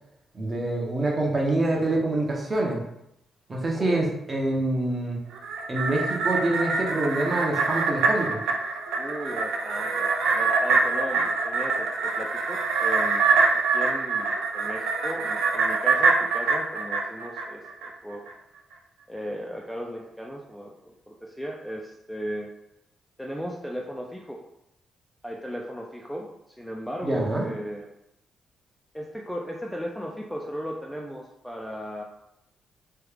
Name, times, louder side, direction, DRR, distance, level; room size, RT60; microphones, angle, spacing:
voice 1, 0.3-2.8 3.5-5.2 5.7-8.4 27.0-27.5, right 2 dB, 30° right, -1 dB, 0.8 m, -26 dB
voice 2, 3.7-4.0 9.0-18.3 19.1-22.5 23.2-24.4 25.2-27.9 28.9-32.0, equal, ahead, -1 dB, 0.3 m, -36 dB
sound 1, 5.3-17.9 18.3-18.4, right 4 dB, 90° right, 0.4 m, -25 dB
3.1 x 2.3 x 3.3 m, 0.80 s
cardioid pair, 105°, 0 cm